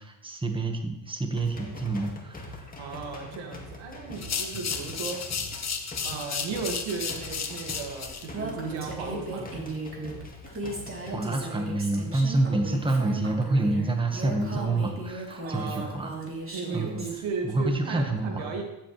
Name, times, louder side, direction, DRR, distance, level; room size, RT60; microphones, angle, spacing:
voice 1, 0.0-2.7 4.5-4.6 11.1-16.2 16.7-17.0 17.4-18.5, right 2 dB, 10° right, 4 dB, 1.5 m, -28 dB
sound 1, 1.3-11.2, left 1 dB, 20° left, 2.2 m, -43 dB
voice 2, 2.8-5.2 6.0-9.6 15.4-15.9 16.5-18.6, right 5 dB, 75° right, 1 dB, 2.2 m, -35 dB
sound 2, 4.1-8.3, left 6 dB, 35° left, 1.3 m, -33 dB
Female speech woman speaking, 8.3-17.2, right 2 dB, 25° right, 3.4 m, -36 dB
14.5 x 7.7 x 3.3 m, 0.94 s
supercardioid pair, 75°, 48 cm